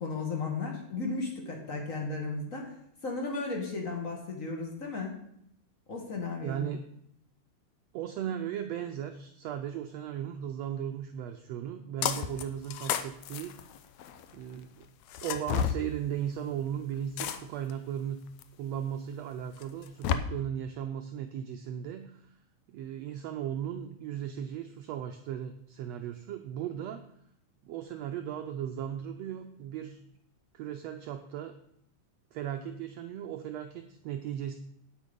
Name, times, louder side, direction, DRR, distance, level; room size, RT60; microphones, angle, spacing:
voice 1, 0.0-2.8 3.0-5.2 5.9-6.6, left 3 dB, 30° left, 1 dB, 1.8 m, -35 dB
voice 2, 6.4-6.8 7.9-13.6 14.3-14.9 15.2-18.2 18.6-22.3 22.7-27.0 27.6-30.0 30.5-31.5 32.3-34.5, right 9 dB, 80° right, 6 dB, 1.5 m, -36 dB
sound 1, 12.0-12.4 12.7-14.3 15.1-15.8 17.2-17.7 18.4-18.5 19.6-20.2, left 9 dB, 75° left, 1.7 m, -31 dB
9.5 x 8.3 x 5.3 m, 0.70 s
omnidirectional pair, 3.7 m